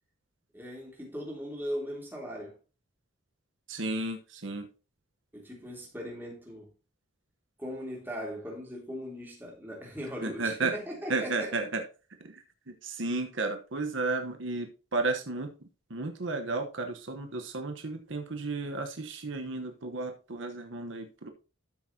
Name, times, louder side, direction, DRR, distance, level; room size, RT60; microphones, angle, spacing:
voice 1, 0.5-2.6 5.3-6.7 7.6-11.5, equal, 10° right, 3.3 m, -39 dB
voice 2, 3.7-4.7 10.2-10.7 11.1-11.8 12.2-15.5 15.9-21.3, right 3 dB, 70° right, 1.1 m, -33 dB
13.0 x 6.1 x 2.8 m
head